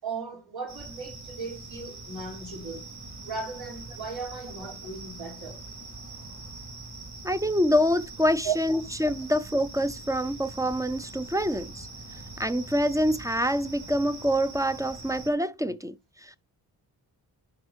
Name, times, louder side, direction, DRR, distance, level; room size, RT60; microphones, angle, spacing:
voice 1, 0.0-2.9 3.2-5.6 8.4-8.5, right 5 dB, 80° right, 3.6 m, -36 dB
sound 1, 0.7-15.3, right 2 dB, 45° right, 3.0 m, -43 dB
voice 2, 7.2-11.9 12.4-16.0 16.2-16.4, equal, 10° right, 0.4 m, -26 dB
10.5 x 4.9 x 3.2 m
cardioid pair, 95°, 38 cm